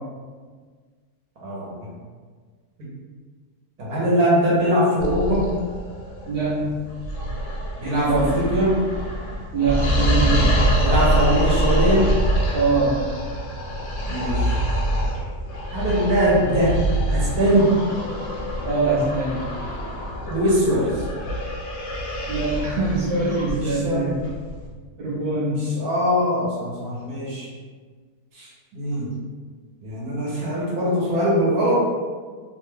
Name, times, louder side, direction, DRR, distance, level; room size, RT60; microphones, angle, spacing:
voice 1, 1.4-1.9 3.8-5.5 7.8-8.8 10.8-12.1 14.1-14.6 15.7-16.7 17.1-17.7 20.3-21.0 23.5-24.1 25.5-27.5 28.3-29.1 29.8-31.9, equal, 75° right, -7 dB, 1.4 m, -22 dB
sound 1, 5.0-24.7, equal, 60° left, 0.7 m, -25 dB
voice 2, 6.3-6.7 7.8-8.3 9.5-10.5 12.5-13.0 18.6-19.4 22.3-24.1 25.0-25.7, right 3 dB, 55° right, -8 dB, 0.8 m, -23 dB
3.0 x 2.2 x 3.2 m, 1.5 s
omnidirectional pair, 1.7 m